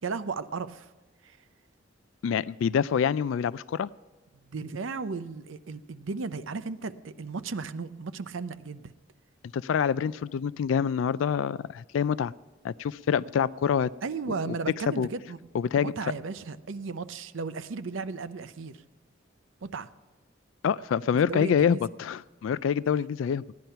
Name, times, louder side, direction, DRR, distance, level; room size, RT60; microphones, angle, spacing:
voice 1, 0.0-0.9 1.2-1.4 4.3-8.9 14.0-15.4 15.8-18.8 19.6-19.9 21.3-21.8, right 4 dB, 90° right, 12 dB, 0.6 m, -35 dB
voice 2, 2.2-3.9 9.5-12.3 12.6-13.9 14.5-14.6 14.9-15.1 15.5-15.9 20.6-23.4, left 7 dB, 85° left, 18 dB, 0.3 m, -26 dB
16.0 x 10.5 x 5.6 m, 1.2 s
head